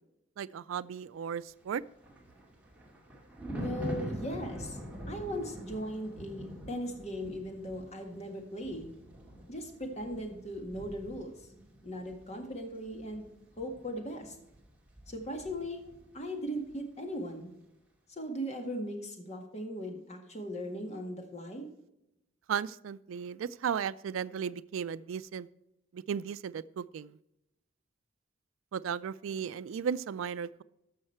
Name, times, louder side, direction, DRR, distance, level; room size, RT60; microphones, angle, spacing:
voice 1, 0.4-1.8 22.5-25.5 25.9-27.2 28.7-30.6, right 7 dB, 85° right, 17 dB, 0.3 m, -35 dB
Thunder, 1.6-16.2 16.5-16.8, equal, 5° right, 2.3 m, -45 dB
voice 2, 3.5-4.8 5.1-8.9 9.5-11.3 11.8-13.3 13.6-14.4 15.1-15.9 16.1-17.5 18.1-21.7, equal, 35° left, 4 dB, 1.8 m, -38 dB
13.0 x 6.4 x 4.4 m, 0.88 s
head